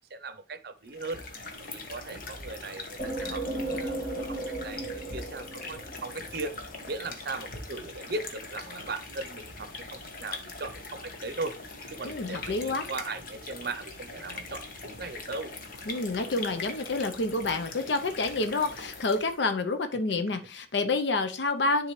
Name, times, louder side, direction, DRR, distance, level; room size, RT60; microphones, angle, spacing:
voice 1, 0.1-1.2 1.7-6.6 6.9-11.6 11.9-15.5, right 3 dB, 60° right, 0.7 m, -38 dB
sound 1, 0.8-19.5, left 3 dB, 50° left, 1.2 m, -42 dB
sound 2, 3.0-6.6, right 2 dB, 30° left, 2.0 m, -35 dB
voice 2, 12.0-12.9 15.9-21.9, left 3 dB, 75° left, 0.7 m, -28 dB
10.5 x 3.8 x 3.1 m
head